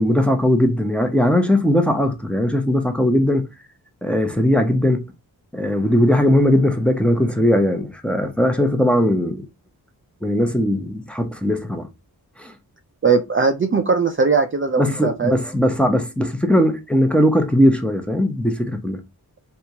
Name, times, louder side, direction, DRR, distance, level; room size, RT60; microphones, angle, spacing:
voice 1, 0.0-3.4 4.0-5.1 5.5-9.4 10.2-11.9 12.4-12.5 14.8-19.0, left 1 dB, 5° left, 0.7 m, -19 dB
voice 2, 13.0-15.3, right 4 dB, 30° right, 0.5 m, -19 dB
3.4 x 2.6 x 2.8 m
cardioid pair, 55°, 39 cm